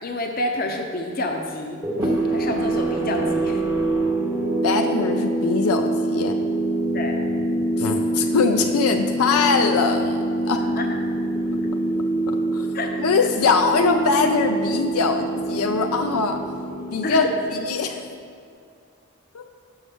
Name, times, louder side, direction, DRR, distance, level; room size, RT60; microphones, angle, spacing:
voice 1, 0.0-3.6 6.9-7.1 10.5-10.9 12.7-12.9 13.2-13.3 17.0-17.3, left 1 dB, 45° left, 3 dB, 0.7 m, -28 dB
sound 1, 1.8-18.1, right 1 dB, 15° right, 0.7 m, -25 dB
voice 2, 4.6-6.4 7.8-10.2 10.5-10.6 12.3-16.4 16.9-18.0 19.3-19.5, left 4 dB, 90° left, 6 dB, 0.5 m, -22 dB
7.1 x 6.2 x 3.5 m, 2.4 s
head